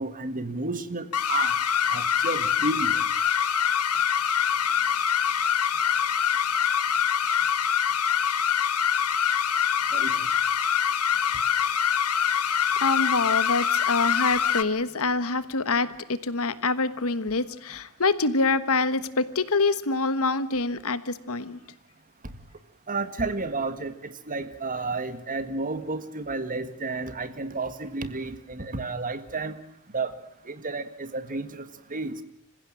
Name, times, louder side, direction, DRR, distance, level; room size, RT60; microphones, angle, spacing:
voice 1, 0.0-1.5 1.9-3.0 9.9-10.1 22.9-29.6 29.9-30.1 30.5-31.6 31.9-32.2, right 3 dB, 40° right, 11 dB, 1.8 m, -31 dB
sound 1, 1.1-14.6, left 8 dB, 90° left, 1.3 m, -24 dB
voice 2, 12.3-21.6, left 3 dB, 70° left, 14 dB, 1.3 m, -26 dB
26.5 x 16.0 x 9.0 m, 0.80 s
head